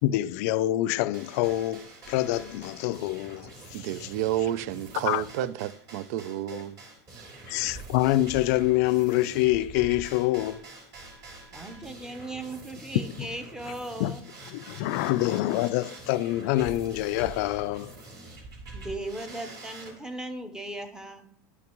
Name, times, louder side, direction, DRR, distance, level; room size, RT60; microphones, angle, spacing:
voice 1, 0.0-4.1 5.0-5.2 6.5-6.6 7.5-10.6 12.9-13.3 14.0-14.2 14.5-17.9, left 16 dB, 60° left, 0.3 m, -26 dB
sound 1, 1.1-19.9, right 2 dB, 40° right, 3.3 m, -46 dB
voice 2, 3.7-6.8 7.2-7.3, right 12 dB, 65° right, 0.4 m, -31 dB
voice 3, 11.5-14.2 18.7-21.3, right 1 dB, 5° right, 0.8 m, -37 dB
10.5 x 6.0 x 3.0 m
supercardioid pair, 140°, 10 cm